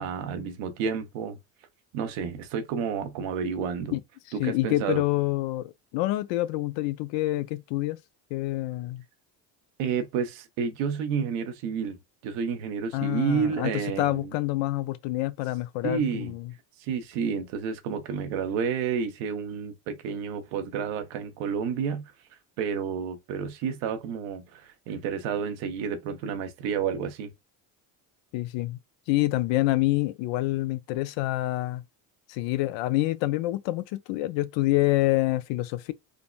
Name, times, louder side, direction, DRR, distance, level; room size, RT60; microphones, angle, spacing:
voice 1, 0.0-1.4 1.9-4.0 4.3-5.0 9.8-12.0 12.2-14.3 15.8-16.3 16.8-22.1 22.6-27.3, right 6 dB, 80° right, 0.8 m, -30 dB
voice 2, 4.4-8.0 8.3-9.0 12.9-13.7 14.0-16.5 28.3-28.8 29.1-31.8 32.3-35.9, left 17 dB, 70° left, 0.5 m, -27 dB
3.6 x 2.0 x 2.2 m
supercardioid pair, 80°, 47 cm